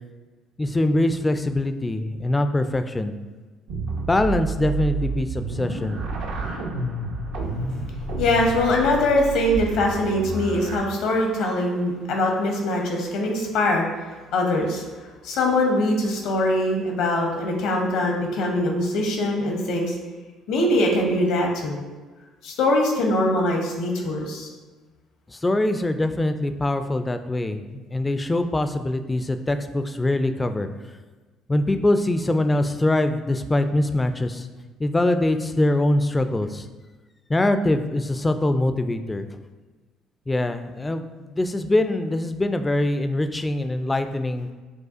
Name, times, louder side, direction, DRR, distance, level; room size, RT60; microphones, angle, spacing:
voice 1, 0.6-3.1 4.1-6.0 25.3-30.7 31.5-34.5 34.8-36.7 37.3-39.4 40.3-44.5, left 1 dB, 20° left, 8 dB, 0.3 m, -23 dB
sound 1, 3.7-10.8, right 3 dB, 70° right, 0.5 m, -30 dB
voice 2, 8.2-13.9 14.3-14.8 15.2-19.9 20.5-21.8 22.4-24.5, left 1 dB, 70° left, 1 dB, 0.8 m, -22 dB
6.3 x 2.4 x 2.4 m, 1.3 s
hypercardioid pair, 55°, 0 cm